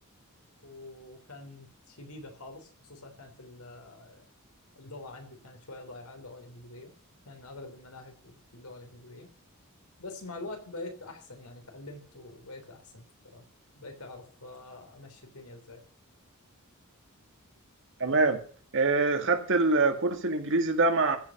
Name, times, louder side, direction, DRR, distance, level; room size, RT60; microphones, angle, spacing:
voice 1, 0.6-4.2 4.7-6.9 7.2-9.3 10.0-13.5 13.8-15.8, left 2 dB, 85° left, 3.4 m, -45 dB
voice 2, 18.0-18.4 18.7-21.2, right 3 dB, 60° right, 2.0 m, -24 dB
15.5 x 5.7 x 8.5 m
head